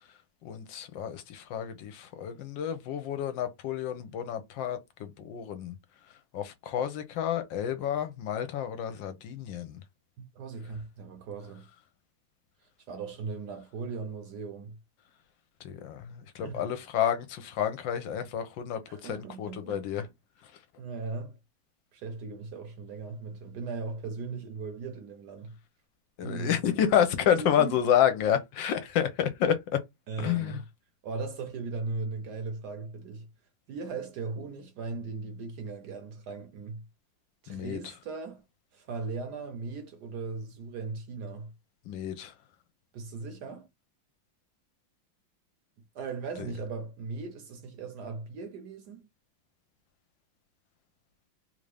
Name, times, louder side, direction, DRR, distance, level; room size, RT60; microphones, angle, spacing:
voice 1, 0.4-5.8 6.3-9.8 15.6-20.1 26.2-29.8 30.2-30.6 37.5-37.8 41.9-42.3 46.4-46.5, left 9 dB, 75° left, 1.3 m, -29 dB
voice 2, 10.2-11.7 12.9-14.8 16.4-16.7 18.9-19.8 20.8-21.4 21.9-25.6 26.2-26.6 27.1-27.8 30.1-30.6 31.0-33.3 33.7-36.9 37.4-38.4 38.7-41.5 42.9-43.7 45.9-49.1, right 4 dB, 65° right, 1.1 m, -38 dB
3.4 x 2.6 x 3.3 m
omnidirectional pair, 2.2 m